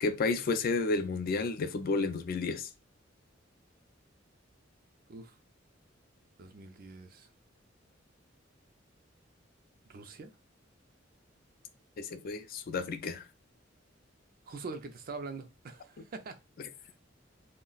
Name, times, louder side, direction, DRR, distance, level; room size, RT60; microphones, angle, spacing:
voice 1, 0.0-2.7 12.0-13.3, left 3 dB, 50° left, 0.3 m, -31 dB
voice 2, 6.4-7.3 9.9-10.3 14.5-16.4, right 4 dB, 50° right, 0.4 m, -43 dB
2.3 x 2.1 x 3.8 m
head